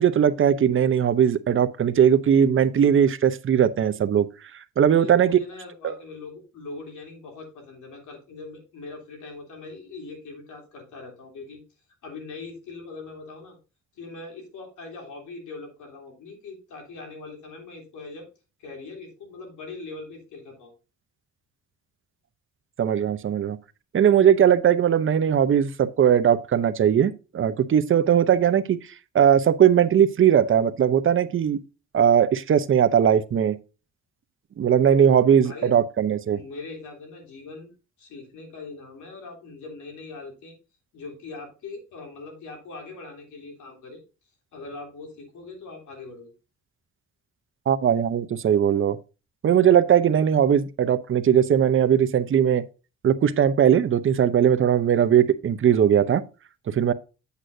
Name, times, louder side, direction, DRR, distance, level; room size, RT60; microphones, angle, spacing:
voice 1, 0.0-4.3 4.8-5.4 5.8-5.9 22.8-23.6 23.9-28.8 29.1-31.6 31.9-33.6 34.6-36.4 47.7-49.0 49.4-52.6 53.0-56.2 56.7-56.9, right 9 dB, 45° right, 0.7 m, -19 dB
voice 2, 4.8-11.6 12.0-13.6 14.0-18.3 18.6-20.7 35.3-35.7 36.3-37.7 38.0-40.5 40.9-44.0 44.5-46.3, left 3 dB, 75° left, 3.3 m, -41 dB
8.3 x 7.7 x 2.6 m
cardioid pair, 90°, 30 cm